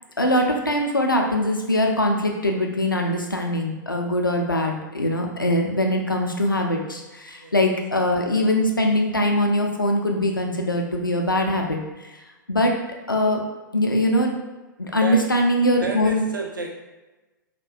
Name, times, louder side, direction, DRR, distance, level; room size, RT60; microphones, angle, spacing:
voice 1, 0.2-11.8 12.5-12.7 13.1-13.4 13.7-14.3 14.8-16.2, left 1 dB, 90° left, 2 dB, 0.4 m, -22 dB
voice 2, 15.8-16.8, right 3 dB, 75° right, 0 dB, 0.5 m, -31 dB
2.6 x 2.1 x 2.3 m, 1.1 s
figure-of-eight pair, 110°, 11 cm